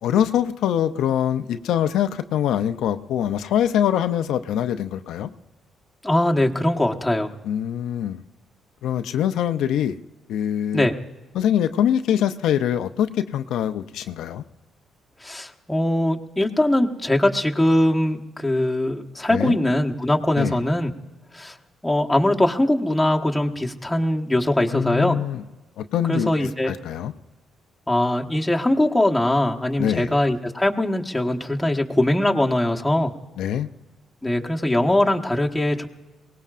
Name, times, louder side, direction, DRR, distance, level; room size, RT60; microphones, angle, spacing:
voice 1, 0.0-5.3 7.4-8.2 8.8-10.0 10.3-10.9 11.3-14.4 19.3-19.6 20.4-20.6 24.7-25.4 25.8-27.1 29.8-30.1 33.4-33.7, left 10 dB, 80° left, 8 dB, 0.5 m, -23 dB
voice 2, 6.0-7.3 10.7-10.9 15.2-20.9 21.3-21.5 21.8-25.2 26.1-26.7 27.9-33.1 34.2-35.9, left 1 dB, 5° left, 0 dB, 1.3 m, -21 dB
23.0 x 19.0 x 2.5 m, 1.2 s
cardioid pair, 90°, 0 cm